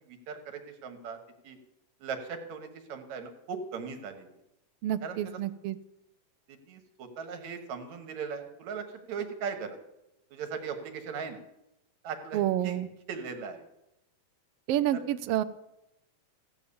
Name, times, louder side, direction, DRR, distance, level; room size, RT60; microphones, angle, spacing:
voice 1, 0.1-1.2 1.4-1.6 2.0-4.3 5.0-5.4 6.5-9.8 10.3-11.4 12.0-12.8 13.1-13.6 14.9-15.0, right 6 dB, 65° right, 7 dB, 2.7 m, -38 dB
voice 2, 4.8-5.8 12.3-12.9 14.7-15.4, right 12 dB, 80° right, 12 dB, 1.3 m, -28 dB
16.0 x 9.3 x 7.0 m, 0.87 s
omnidirectional pair, 3.6 m